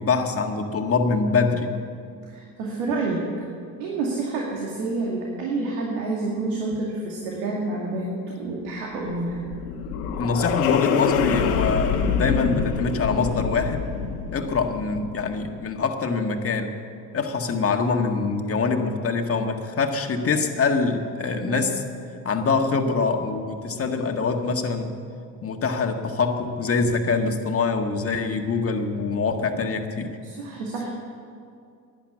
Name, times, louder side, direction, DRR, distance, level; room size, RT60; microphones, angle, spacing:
voice 1, 0.0-1.7 10.2-13.8 14.3-16.7 17.1-21.8 22.2-25.0 25.4-30.1, left 4 dB, 30° left, 4 dB, 1.7 m, -24 dB
voice 2, 2.3-3.3 3.8-9.4 21.5-21.7 30.2-30.9, right 3 dB, 80° right, -2 dB, 2.3 m, -28 dB
sound 1, 8.9-15.4, left 6 dB, 80° left, 1.4 m, -26 dB
11.5 x 10.5 x 8.7 m, 2.4 s
supercardioid pair, 80°, 43 cm